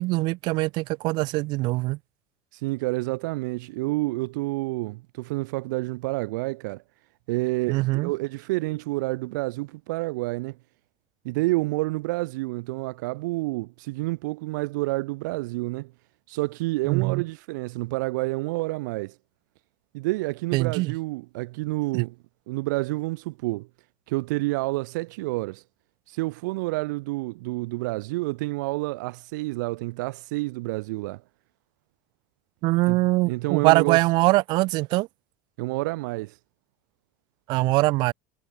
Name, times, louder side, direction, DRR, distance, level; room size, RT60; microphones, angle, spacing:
voice 1, 0.0-2.0 7.7-8.1 16.9-17.2 20.5-20.9 21.9-22.0 32.6-35.1 37.5-38.1, right 22 dB, 50° right, 0.9 m, -22 dB
voice 2, 2.5-6.8 7.3-10.6 11.2-15.9 16.3-19.2 19.9-22.2 22.5-23.7 24.1-25.6 26.1-31.2 32.9-33.0 33.3-34.0 35.6-36.4, right 22 dB, 80° right, 0.5 m, -29 dB
supercardioid pair, 155°, 10 cm